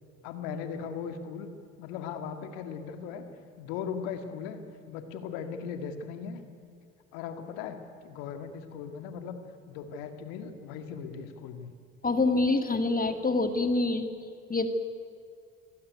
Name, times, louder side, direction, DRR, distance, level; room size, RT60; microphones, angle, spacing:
voice 1, 0.2-1.5 1.8-3.2 3.6-4.6 4.9-6.4 7.1-9.4 9.7-11.7, left 7 dB, 75° left, 7 dB, 2.2 m, -38 dB
voice 2, 12.0-14.1 14.5-14.7, left 3 dB, 25° left, 8 dB, 2.1 m, -26 dB
25.0 x 16.5 x 9.5 m, 2.4 s
hypercardioid pair, 55°, 36 cm